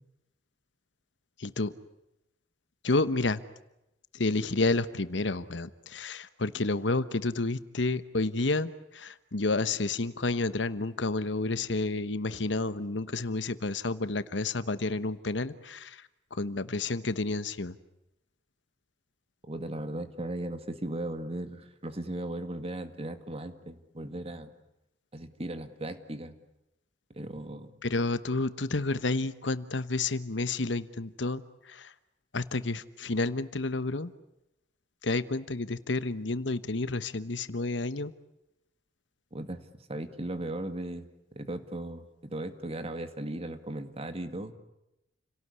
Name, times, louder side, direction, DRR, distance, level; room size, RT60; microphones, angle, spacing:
voice 1, 1.4-1.7 2.8-3.4 4.1-16.0 16.3-17.8 27.8-31.9 32.3-34.1 35.0-38.1, left 3 dB, 80° left, 14 dB, 1.2 m, -30 dB
voice 2, 19.5-24.5 25.1-26.4 27.1-27.7 39.3-39.6 39.9-44.5, right 1 dB, 35° right, 9 dB, 2.1 m, -37 dB
29.5 x 18.0 x 9.7 m, 0.89 s
head